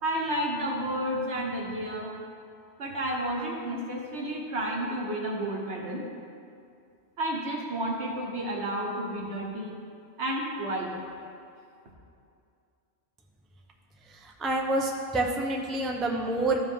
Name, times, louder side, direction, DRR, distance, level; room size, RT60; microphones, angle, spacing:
voice 1, 0.0-2.1 2.8-6.0 7.2-9.8 10.2-10.9, right 1 dB, 70° right, -1 dB, 1.5 m, -31 dB
voice 2, 14.4-16.6, right 2 dB, ahead, 0 dB, 0.4 m, -27 dB
13.5 x 4.9 x 3.6 m, 2.4 s
omnidirectional pair, 1.2 m